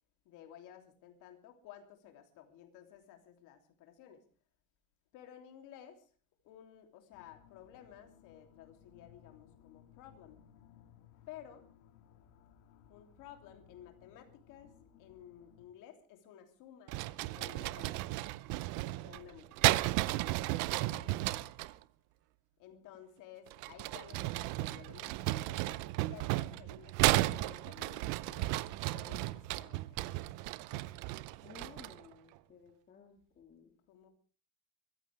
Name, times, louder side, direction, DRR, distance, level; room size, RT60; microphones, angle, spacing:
voice 1, 0.2-4.2 5.1-6.1 6.4-10.4 11.3-11.7 12.9-14.7 15.0-17.0 17.3-18.2 19.0-20.0 20.8-21.5 22.6-28.5 28.9-30.2 33.9-34.1, left 10 dB, 50° left, 5 dB, 3.0 m, -55 dB
sound 1, 7.1-15.7, left 9 dB, 85° left, 3.0 m, -62 dB
sound 2, 16.9-21.7 23.5-32.1, right 18 dB, 50° right, 0.6 m, -34 dB
voice 2, 31.4-33.7, left 5 dB, 25° left, 2 dB, 2.0 m, -56 dB
24.0 x 14.5 x 3.4 m, 0.37 s
cardioid pair, 175°, 40 cm